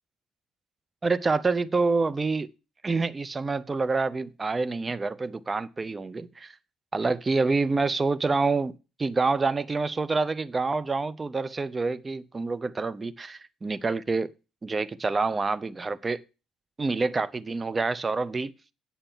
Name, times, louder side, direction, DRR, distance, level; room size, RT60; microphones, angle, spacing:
voice 1, 1.0-2.5 2.8-6.5 6.9-8.7 9.0-14.3 14.6-16.2 16.8-18.5, right 3 dB, 25° right, 0.8 m, -27 dB
9.0 x 6.9 x 7.2 m
figure-of-eight pair, 50°, 0 cm